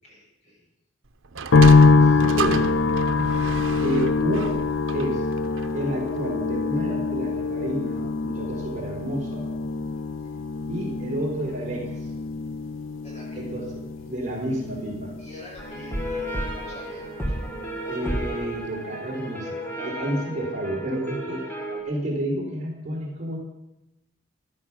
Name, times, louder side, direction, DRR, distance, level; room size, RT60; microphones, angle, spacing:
voice 1, 0.0-0.6 2.0-2.2 10.2-10.3 13.0-13.6 15.2-17.4, left 1 dB, 35° left, -4 dB, 6.6 m, -47 dB
Sliding door, 1.2-5.9, right 4 dB, 85° right, 0.9 m, -32 dB
sound 1, 1.5-16.8 17.0-17.9, left 4 dB, 75° left, 0.5 m, -24 dB
voice 2, 2.2-2.8 3.8-4.6 4.9-5.3 5.7-9.4 10.7-12.1 13.3-13.7 14.1-15.1 17.9-21.5 21.8-23.4, right 1 dB, 35° right, -2 dB, 4.1 m, -30 dB
sound 2, 15.6-21.8, equal, 10° left, 3.0 m, -32 dB
14.0 x 12.5 x 6.1 m, 0.90 s
head